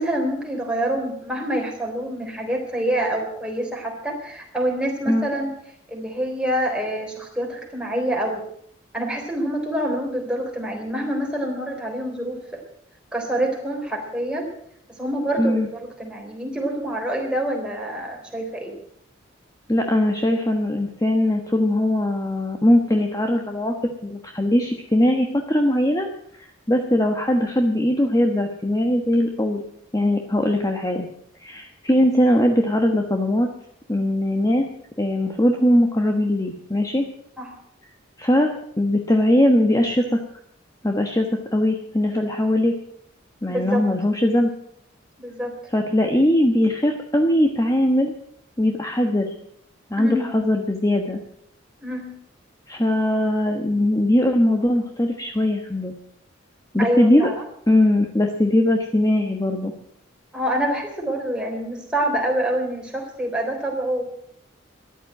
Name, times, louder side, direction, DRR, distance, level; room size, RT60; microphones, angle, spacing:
voice 1, 0.0-5.5 5.9-8.4 8.9-12.6 13.1-14.5 14.9-18.7 37.4-37.5 43.5-43.8 45.2-45.5 50.0-50.3 51.8-52.1 56.8-57.3 60.3-64.0, right 1 dB, 5° right, 0 dB, 3.6 m, -26 dB
voice 2, 19.7-23.7 24.0-26.1 26.4-29.6 29.9-31.1 31.4-33.5 33.9-34.7 35.0-37.1 38.2-40.2 40.8-41.3 41.5-42.7 43.4-44.5 45.7-48.1 48.6-49.3 49.9-51.2 52.7-55.9 56.7-57.3 57.7-59.7, left 1 dB, 15° left, 3 dB, 1.1 m, -20 dB
14.0 x 11.5 x 7.7 m, 0.69 s
head